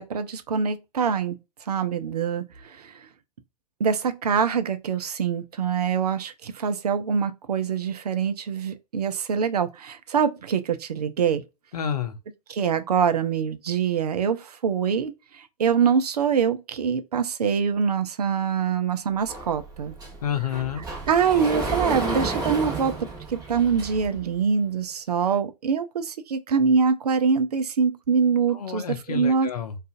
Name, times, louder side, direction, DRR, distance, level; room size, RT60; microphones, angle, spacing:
voice 1, 0.0-1.4 1.7-3.1 3.8-11.4 12.5-19.9 21.1-29.5, right 6 dB, 75° right, 0.5 m, -24 dB
voice 2, 11.7-12.2 20.2-20.8 28.5-29.8, left 9 dB, 70° left, 0.6 m, -29 dB
Sliding door, 19.3-24.2, right 3 dB, 20° right, 1.1 m, -31 dB
2.4 x 2.4 x 2.4 m
figure-of-eight pair, 100°, 20 cm